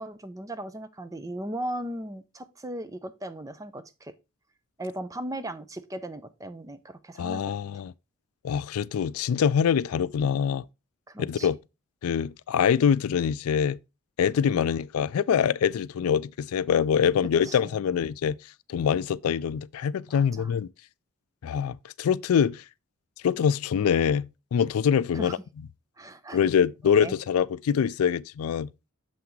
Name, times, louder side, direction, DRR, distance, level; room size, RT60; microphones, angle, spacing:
voice 1, 0.0-4.1 4.8-7.6 11.1-11.5 14.5-14.7 17.4-18.0 20.1-20.5 25.1-25.4 26.0-26.5 27.0-27.1, right 1 dB, 15° right, 0.5 m, -37 dB
voice 2, 7.2-7.9 8.4-10.6 11.2-11.6 12.0-13.8 14.2-18.4 18.7-20.7 21.4-22.6 23.2-25.4 26.3-28.7, left 7 dB, 85° left, 0.3 m, -24 dB
7.0 x 5.8 x 3.1 m
head